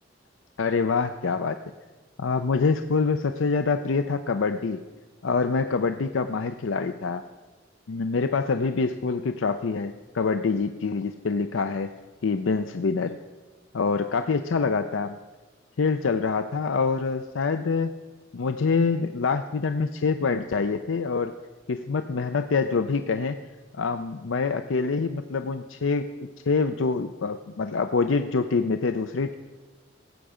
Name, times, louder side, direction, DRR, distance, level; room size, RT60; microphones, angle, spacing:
voice 1, 0.6-1.6 2.2-4.8 5.2-7.2 7.9-11.9 12.2-13.2 13.7-15.2 15.8-17.9 18.3-21.3 21.7-23.4 23.7-26.1 26.5-29.3, left 4 dB, 85° left, 9 dB, 0.5 m, -25 dB
17.5 x 8.0 x 5.0 m, 1.3 s
head